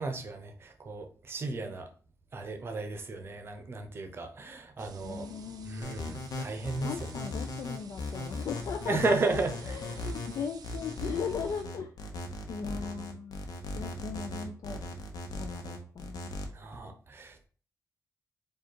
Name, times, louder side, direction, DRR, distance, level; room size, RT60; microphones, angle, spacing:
voice 1, 0.0-1.9 2.3-5.3 5.6-7.3 8.8-9.8 16.5-17.4, right 3 dB, 40° right, 6 dB, 0.7 m, -34 dB
sound 1, 4.8-11.6, right 5 dB, 85° right, 0.5 m, -50 dB
voice 2, 5.0-6.2 6.8-9.1 9.7-12.1 12.5-13.5 13.8-14.8 15.3-16.3, left 6 dB, 65° left, 5 dB, 0.4 m, -38 dB
sound 2, 5.8-16.5, left 2 dB, 80° left, 0.8 m, -38 dB
4.8 x 2.4 x 4.5 m, 0.42 s
wide cardioid pair, 180°, 7 cm